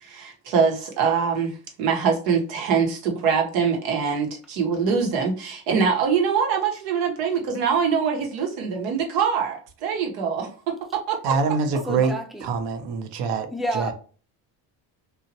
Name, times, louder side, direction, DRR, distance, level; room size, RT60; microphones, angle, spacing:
voice 1, 0.0-11.4, right 6 dB, 80° right, 1.0 m, -24 dB
voice 2, 11.2-12.2 12.4-13.5 13.7-13.9, right 5 dB, 60° right, 0.8 m, -24 dB
voice 3, 11.9-12.5 13.5-13.9, right 1 dB, ahead, 0.5 m, -29 dB
2.9 x 2.4 x 2.7 m
hypercardioid pair, 65°, 49 cm